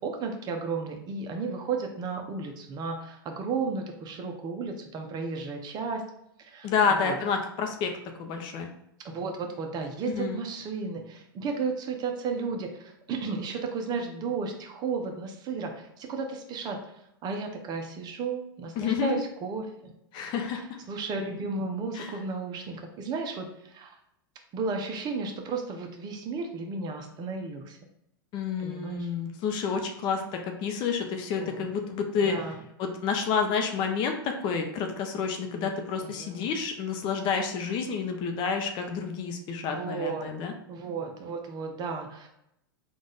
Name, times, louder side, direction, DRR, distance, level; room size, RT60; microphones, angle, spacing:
voice 1, 0.0-6.0 6.4-6.7 7.0-7.2 9.1-15.7 16.0-16.8 17.2-19.9 20.9-23.5 23.7-23.9 24.5-27.8 28.6-29.1 31.4-31.7 32.2-32.5 35.9-36.5 39.7-40.3 40.7-42.3, right 4 dB, 35° right, 3 dB, 0.7 m, -33 dB
voice 2, 6.6-7.9 8.2-8.7 10.1-10.4 18.8-19.2 20.1-20.6 21.9-22.2 28.3-32.4 32.8-40.5, left 6 dB, 40° left, 4 dB, 0.7 m, -29 dB
3.8 x 2.4 x 3.8 m, 0.79 s
hypercardioid pair, 110°, 12 cm